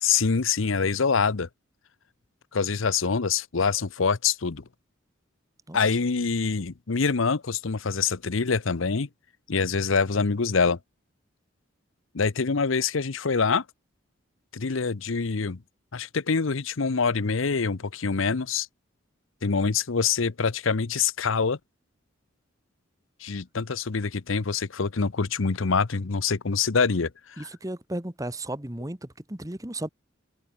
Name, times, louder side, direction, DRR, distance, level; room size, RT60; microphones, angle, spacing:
voice 1, 0.0-1.5 2.5-4.6 5.7-9.1 9.5-10.8 12.1-13.6 14.5-15.6 15.9-18.7 19.4-21.6 23.2-27.1 27.4-27.5, left 5 dB, 80° left, 0.8 m, -25 dB
voice 2, 27.4-29.9, right 1 dB, 15° right, 1.3 m, -34 dB
head